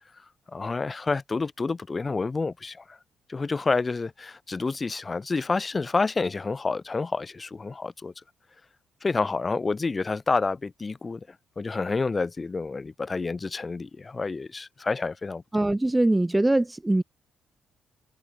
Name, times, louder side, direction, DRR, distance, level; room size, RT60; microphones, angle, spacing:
voice 1, 0.5-3.0 3.3-8.1 9.0-11.2 11.6-15.4, left 4 dB, 30° left, 0.7 m, -28 dB
voice 2, 15.5-17.0, right 1 dB, 10° right, 0.4 m, -22 dB
cardioid pair, 90°, 0 cm